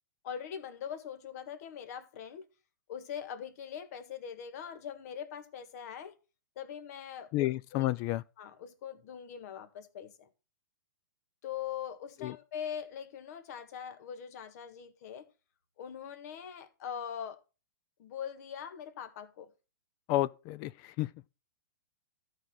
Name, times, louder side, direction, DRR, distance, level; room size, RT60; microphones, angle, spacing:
voice 1, 0.2-2.4 2.9-6.1 6.6-7.9 8.4-10.3 11.4-15.3 15.8-17.4 18.0-19.5, left 8 dB, 55° left, 1.6 m, -42 dB
voice 2, 7.3-8.2 12.2-12.3 20.1-21.1, left 16 dB, 35° left, 0.4 m, -31 dB
13.5 x 4.8 x 5.8 m
hypercardioid pair, 125°, 10 cm